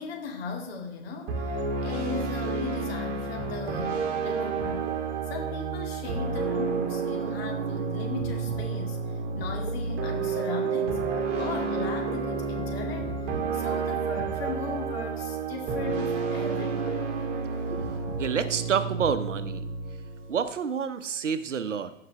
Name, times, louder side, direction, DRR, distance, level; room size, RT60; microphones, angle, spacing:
voice 1, 0.0-4.9 5.3-13.2 13.5-17.1, left 4 dB, 50° left, 3 dB, 2.1 m, -37 dB
sound 1, 1.3-20.5, right 5 dB, 35° right, 1.7 m, -30 dB
voice 2, 17.7-19.6 20.3-21.9, right 7 dB, 70° right, 12 dB, 0.7 m, -29 dB
16.0 x 5.8 x 3.3 m, 0.82 s
figure-of-eight pair, 105°, 38 cm